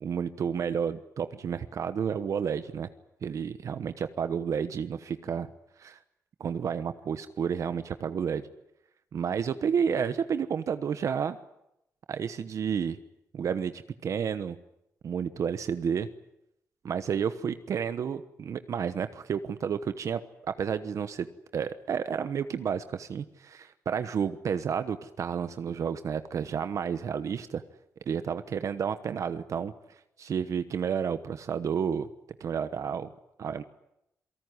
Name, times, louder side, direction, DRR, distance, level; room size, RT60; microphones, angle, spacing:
voice 1, 0.0-2.9 3.2-5.5 5.8-6.0 6.4-8.4 9.1-11.4 12.1-13.0 13.3-14.6 15.0-16.1 16.8-21.3 21.5-27.6 28.1-29.7 30.2-32.1 32.4-33.1 33.4-33.6, right 7 dB, 60° right, 11 dB, 1.1 m, -31 dB
28.0 x 18.5 x 9.7 m, 0.83 s
wide cardioid pair, 125°, 6 cm